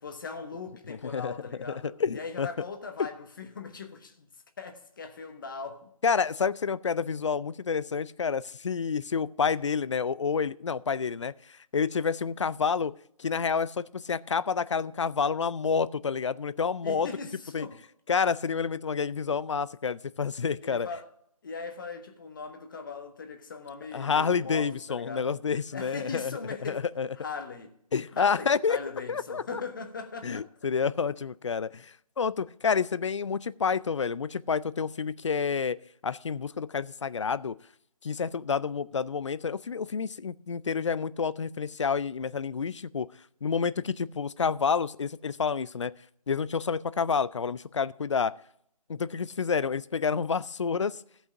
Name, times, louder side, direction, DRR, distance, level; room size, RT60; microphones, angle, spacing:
voice 1, 0.0-4.3 4.6-5.9 16.8-17.8 20.6-21.1 21.4-25.3 25.7-26.9 27.2-27.7 28.1-30.5 43.7-43.9, left 4 dB, 35° left, 1.0 m, -40 dB
voice 2, 0.9-1.3 1.7-2.5 6.0-12.9 13.2-17.1 17.5-17.7 18.1-20.9 23.9-27.1 27.9-28.8 29.1-29.6 30.2-35.8 36.0-37.6 38.0-43.1 43.4-45.9 46.3-48.3 48.9-51.0, left 6 dB, 50° left, 0.4 m, -29 dB
15.0 x 5.6 x 5.8 m
figure-of-eight pair, 165°, 19 cm